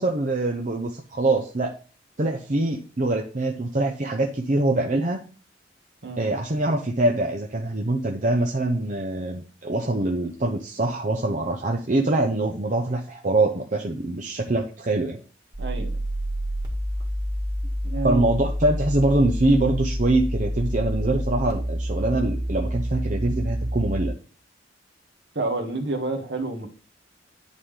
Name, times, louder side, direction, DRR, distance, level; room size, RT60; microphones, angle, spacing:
voice 1, 0.0-1.7 2.2-5.2 6.2-15.2 18.0-24.1, right 2 dB, 40° right, 1 dB, 0.8 m, -24 dB
sound 1, 15.5-24.1, equal, 25° right, 1.8 m, -28 dB
voice 2, 15.6-15.9 17.8-18.2 25.3-26.7, right 3 dB, 60° right, 3 dB, 1.6 m, -28 dB
10.5 x 3.7 x 3.3 m, 0.39 s
head